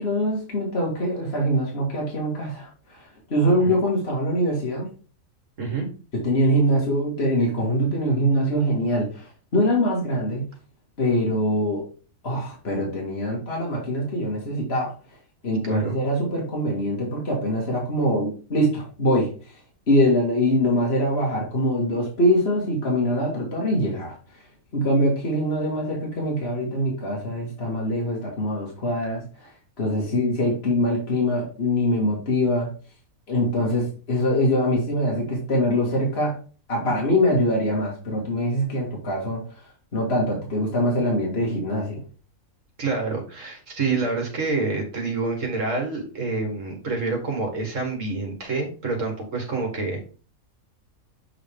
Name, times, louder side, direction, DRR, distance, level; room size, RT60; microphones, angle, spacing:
voice 1, 0.0-2.7 3.3-4.9 6.1-10.4 11.0-11.9 12.2-14.9 15.4-19.3 19.9-24.1 24.7-29.2 29.8-32.7 33.3-36.4 36.7-39.4 39.9-42.0, equal, 45° left, -2 dB, 2.2 m, -23 dB
voice 2, 42.8-50.0, right 3 dB, 60° right, 2 dB, 2.1 m, -27 dB
7.4 x 4.9 x 3.6 m, 0.37 s
omnidirectional pair, 1.5 m